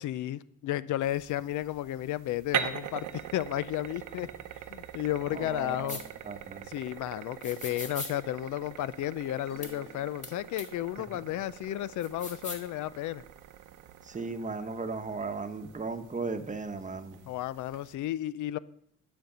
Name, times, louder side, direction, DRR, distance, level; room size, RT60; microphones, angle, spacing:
voice 1, 0.0-4.3 4.7-6.0 6.7-13.2 17.3-18.6, left 14 dB, 75° left, 0.5 m, -33 dB
sound 1, 1.0-17.9, right 10 dB, 85° right, 0.8 m, -42 dB
voice 2, 5.3-6.7 11.0-11.1 14.0-17.2, right 4 dB, 25° right, 1.0 m, -36 dB
sound 2, 5.9-6.0 7.4-8.1 9.6-9.7 10.2-10.3 10.6-10.7 12.0-12.7, left 2 dB, 25° left, 1.9 m, -39 dB
sound 3, 9.4-11.0, left 3 dB, 60° left, 3.8 m, -55 dB
11.5 x 5.3 x 6.6 m
cardioid pair, 90°, 30 cm